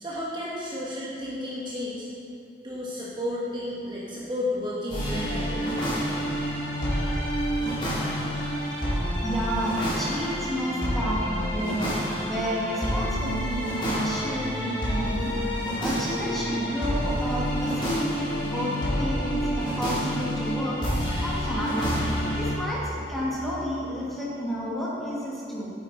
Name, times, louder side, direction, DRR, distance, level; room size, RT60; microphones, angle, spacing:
voice 1, 0.0-2.1 2.6-5.7, left 1 dB, 25° right, -6 dB, 1.1 m, -32 dB
sound 1, 4.9-22.5, equal, 30° left, 2.3 m, -28 dB
voice 2, 9.2-11.8 12.3-15.3 15.8-20.8 21.2-21.9 22.3-25.7, equal, ahead, -6 dB, 1.7 m, -31 dB
8.8 x 7.9 x 4.1 m, 2.7 s
head